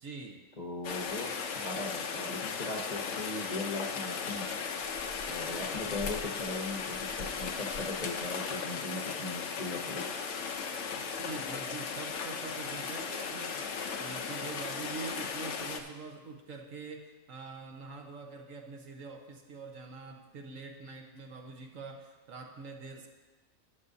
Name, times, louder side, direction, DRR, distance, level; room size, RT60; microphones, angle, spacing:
voice 1, 0.0-0.4 11.1-23.1, right 4 dB, 65° right, 2 dB, 1.4 m, -44 dB
voice 2, 0.6-4.5 5.3-10.0, left 2 dB, 35° left, 0 dB, 1.0 m, -39 dB
Rain, 0.8-15.8, left 5 dB, 60° left, 1.0 m, -36 dB
13.5 x 9.5 x 2.7 m, 1.2 s
omnidirectional pair, 1.5 m